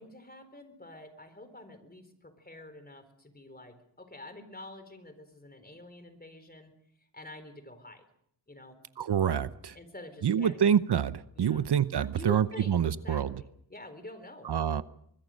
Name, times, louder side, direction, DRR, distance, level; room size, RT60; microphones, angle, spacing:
voice 1, 0.0-6.7 7.1-8.0 8.5-8.8 9.7-10.7 11.3-11.6 12.0-14.5, left 1 dB, 20° left, 9 dB, 4.1 m, -47 dB
voice 2, 9.0-9.8 10.2-13.3 14.4-14.8, right 8 dB, 65° right, 14 dB, 0.9 m, -27 dB
24.5 x 21.5 x 6.5 m, 0.69 s
wide cardioid pair, 95°, 43 cm